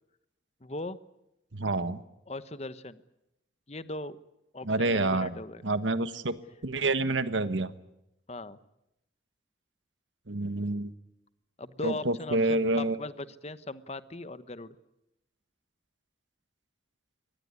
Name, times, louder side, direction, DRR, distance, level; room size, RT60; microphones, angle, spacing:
voice 1, 0.6-1.0 2.3-3.0 3.7-4.2 4.5-5.6 8.3-8.6 11.6-14.8, left 2 dB, 35° left, 13 dB, 1.1 m, -39 dB
voice 2, 1.5-2.0 4.6-5.4 5.6-6.3 6.6-7.7 10.3-10.9 11.8-13.0, right 2 dB, 80° right, 12 dB, 1.4 m, -28 dB
23.5 x 19.5 x 9.7 m, 0.89 s
head